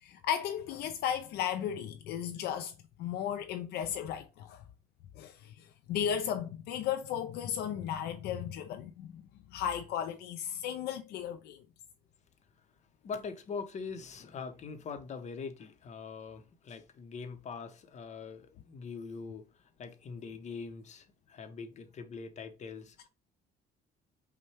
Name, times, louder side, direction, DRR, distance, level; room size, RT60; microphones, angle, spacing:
voice 1, 0.0-2.7 3.0-4.6 5.2-5.5 5.9-9.2 9.5-11.6, left 9 dB, 75° left, 0.4 m, -35 dB
voice 2, 13.0-19.4 19.8-23.1, left 5 dB, 45° left, 0.8 m, -43 dB
5.3 x 2.2 x 3.3 m
cardioid pair, 110°, 17 cm